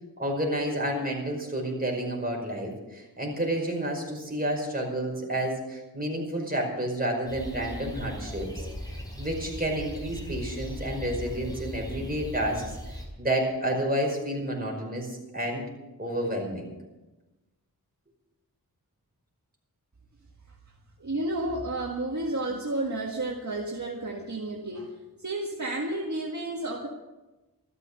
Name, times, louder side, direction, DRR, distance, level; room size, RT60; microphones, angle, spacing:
voice 1, 0.2-8.7 9.2-12.8 13.2-15.6 16.0-16.7, right 1 dB, 25° right, -1 dB, 5.3 m, -30 dB
sound 1, 7.3-13.1, equal, 10° left, 4.4 m, -38 dB
voice 2, 21.0-26.9, right 2 dB, 50° right, 0 dB, 1.7 m, -31 dB
14.0 x 13.0 x 6.9 m, 1.1 s
wide cardioid pair, 85°, 38 cm